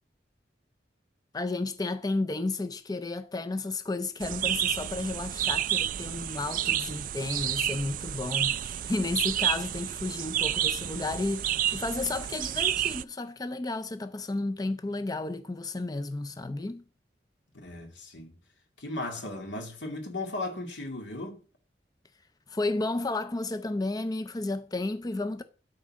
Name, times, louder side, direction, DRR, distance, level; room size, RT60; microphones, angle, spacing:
voice 1, 1.3-16.8 22.5-25.4, left 2 dB, 20° left, 0.5 m, -32 dB
sound 1, 4.2-13.0, right 11 dB, 50° right, 0.3 m, -30 dB
voice 2, 17.5-18.4 18.8-21.4, left 2 dB, 85° left, 2.5 m, -36 dB
12.0 x 4.2 x 6.2 m
head